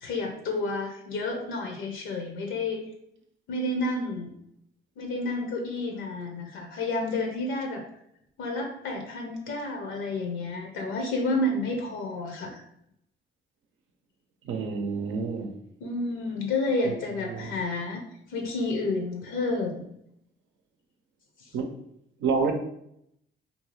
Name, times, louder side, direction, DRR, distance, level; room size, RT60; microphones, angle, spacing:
voice 1, 0.0-2.8 3.5-4.3 5.0-7.8 8.4-12.6 15.8-18.0 18.3-19.8 21.4-21.5, left 2 dB, 80° left, 2 dB, 0.6 m, -30 dB
voice 2, 14.4-15.5 17.3-17.5 21.5-21.7 22.2-22.5, right 5 dB, 75° right, 4 dB, 0.5 m, -28 dB
2.7 x 2.3 x 3.1 m, 0.74 s
cardioid pair, 90°, 20 cm